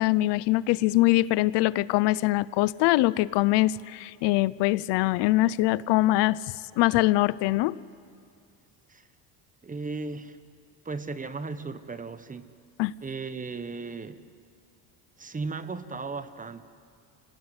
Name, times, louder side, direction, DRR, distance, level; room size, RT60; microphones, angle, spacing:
voice 1, 0.0-6.4 6.8-7.8 12.8-12.9, left 18 dB, 75° left, 19 dB, 0.7 m, -23 dB
voice 2, 9.6-10.4 10.8-12.5 13.0-14.3 15.2-16.6, right 4 dB, 20° right, 11 dB, 1.2 m, -36 dB
28.0 x 18.5 x 9.7 m, 2.4 s
cardioid pair, 115°, 42 cm